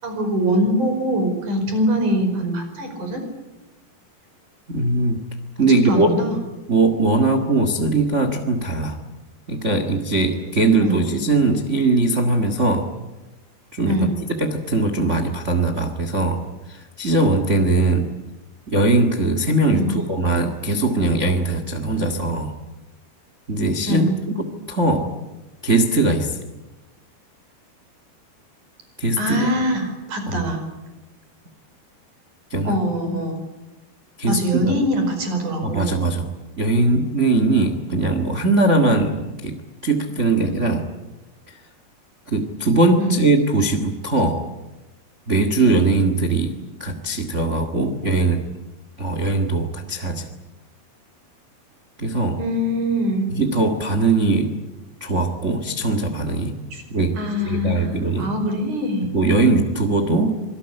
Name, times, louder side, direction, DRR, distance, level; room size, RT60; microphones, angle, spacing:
voice 1, 0.0-3.2 5.6-6.4 10.8-11.0 13.9-14.2 19.7-20.0 23.9-24.2 29.2-30.7 32.6-33.4 34.3-36.0 43.0-43.2 52.4-53.3 56.7-56.8 57.2-59.1, equal, 50° right, 6 dB, 6.2 m, -23 dB
voice 2, 4.7-5.2 5.6-6.1 6.7-9.0 9.5-12.9 13.7-14.0 14.3-18.1 18.7-22.5 23.5-24.1 24.7-25.1 25.6-26.4 29.0-29.5 30.3-30.5 32.5-32.8 34.2-34.7 35.6-36.2 36.6-40.9 42.3-44.4 45.3-46.5 46.8-48.5 49.0-50.3 52.0-52.4 53.3-54.5 55.0-56.6 56.9-57.2 57.4-58.3 59.0-60.4, right 2 dB, 75° right, 7 dB, 0.6 m, -20 dB
26.0 x 19.0 x 10.0 m, 1.1 s
omnidirectional pair, 4.7 m